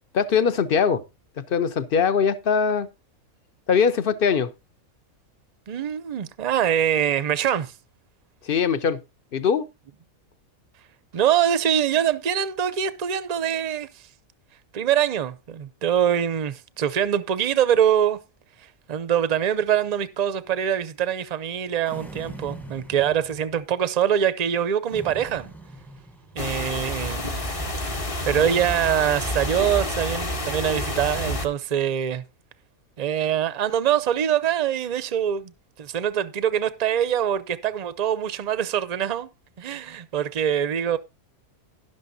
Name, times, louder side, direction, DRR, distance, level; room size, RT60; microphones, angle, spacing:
voice 1, 0.1-1.0 1.5-2.9 3.7-4.5 8.4-9.0 9.3-9.7, left 6 dB, 50° left, 0.7 m, -21 dB
voice 2, 5.7-7.7 11.1-13.9 14.7-18.2 18.9-25.5 26.4-27.3 28.3-32.2 33.0-35.5 35.8-39.3 39.6-41.0, right 9 dB, 45° right, 0.5 m, -24 dB
sound 1, 21.8-23.7 24.9-26.7, right 2 dB, ahead, 0.8 m, -42 dB
sound 2, 26.4-31.5, left 1 dB, 25° left, 1.1 m, -28 dB
12.0 x 11.0 x 2.7 m
omnidirectional pair, 1.5 m